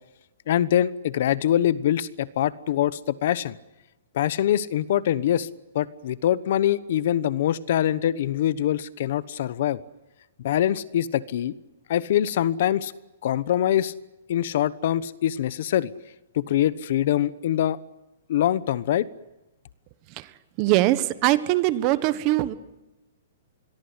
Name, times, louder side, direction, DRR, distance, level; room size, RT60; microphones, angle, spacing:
voice 1, 0.5-3.6 4.1-5.5 5.7-9.8 10.4-11.5 11.9-12.9 13.2-13.9 14.3-15.9 16.3-17.8 18.3-19.1, left 11 dB, 50° left, 18 dB, 1.0 m, -24 dB
voice 2, 20.6-22.6, right 16 dB, 30° right, 14 dB, 1.3 m, -22 dB
27.0 x 22.0 x 8.1 m, 1.0 s
hypercardioid pair, 165°, 0 cm